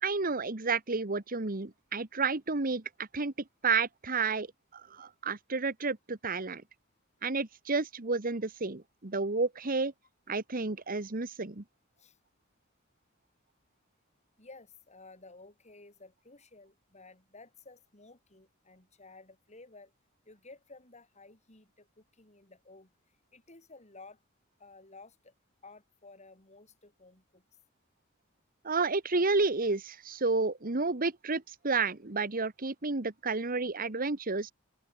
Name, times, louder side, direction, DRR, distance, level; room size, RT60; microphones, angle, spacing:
voice 1, 0.0-3.3 3.6-4.5 4.7-6.6 7.2-9.9 10.3-11.6 28.6-34.5, right 4 dB, 45° right, 1.5 m, -31 dB
voice 2, 14.4-19.9 20.3-22.9 23.3-24.2 24.6-25.3 25.6-27.4 33.8-33.9, left 3 dB, 35° left, 7.5 m, -54 dB
open air
head